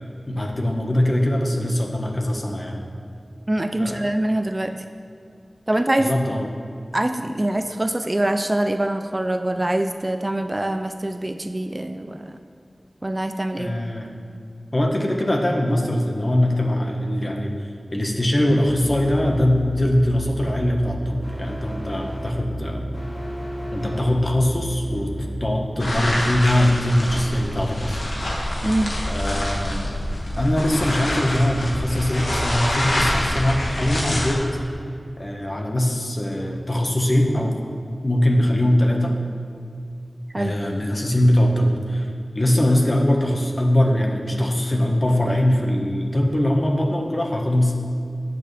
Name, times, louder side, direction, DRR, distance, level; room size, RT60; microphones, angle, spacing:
voice 1, 0.3-2.8 3.8-4.1 6.0-6.5 13.6-14.1 14.7-22.8 23.7-28.0 29.1-30.0 30.4-34.4 35.2-37.6 38.0-39.1 40.3-47.7, left 1 dB, 40° left, 1 dB, 1.4 m, -22 dB
voice 2, 3.5-4.8 5.7-6.1 6.9-12.3 13.0-13.7 28.6-28.9 40.3-40.5, right 1 dB, 30° right, 7 dB, 0.5 m, -24 dB
sound 1, 18.7-25.5, equal, 65° left, 2.7 m, -32 dB
sound 2, 25.8-34.3, left 1 dB, 85° left, 1.9 m, -26 dB
17.5 x 6.8 x 3.4 m, 2.3 s
wide cardioid pair, 65°, 0 cm